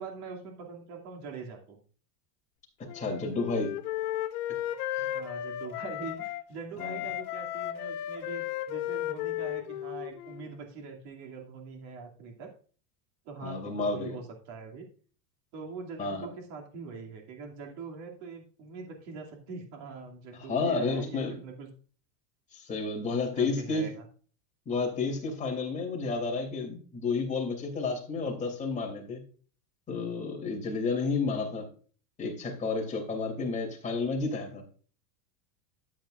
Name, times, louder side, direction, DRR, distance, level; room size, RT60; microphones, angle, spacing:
voice 1, 0.0-1.8 5.1-12.5 13.3-14.8 15.5-21.7 22.9-24.0 31.2-31.4, right 4 dB, 55° right, 2 dB, 2.6 m, -43 dB
Wind instrument woodwind instrument, 2.9-6.4 6.8-10.5, left 13 dB, 75° left, 1.5 m, -35 dB
voice 2, 2.9-3.7 4.9-5.1 6.8-7.0 13.4-14.1 16.0-16.3 20.4-21.4 22.5-23.9 24.7-29.2 29.9-31.7 32.2-34.6, left 4 dB, 15° left, 0 dB, 2.9 m, -31 dB
13.0 x 8.6 x 2.5 m, 0.41 s
supercardioid pair, 165°, 46 cm